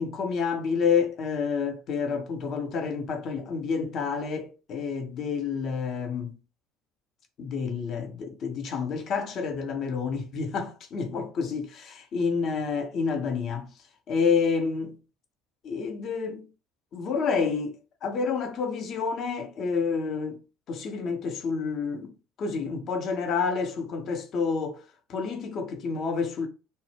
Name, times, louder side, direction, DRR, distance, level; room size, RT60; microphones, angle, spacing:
voice 1, 0.0-6.3 7.4-13.7 14.1-15.0 15.6-16.5 16.9-20.4 20.7-24.8 25.1-26.5, left 5 dB, 45° left, 0.6 m, -29 dB
2.0 x 2.0 x 3.2 m
figure-of-eight pair, 65°, 0 cm